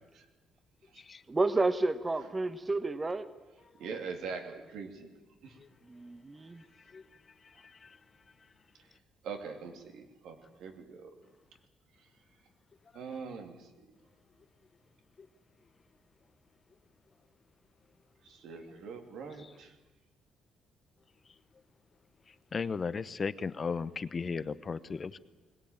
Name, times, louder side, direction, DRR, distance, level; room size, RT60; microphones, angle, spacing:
voice 1, 1.3-3.3 5.8-6.6, right 2 dB, 25° right, 1.1 m, -30 dB
voice 2, 3.8-5.1 9.2-11.1 12.9-13.6 18.4-19.7, right 5 dB, 80° right, 3.0 m, -42 dB
voice 3, 7.4-8.0 19.4-19.5 22.5-25.2, left 5 dB, 40° left, 0.9 m, -36 dB
21.5 x 18.0 x 8.9 m
cardioid pair, 90°, 0 cm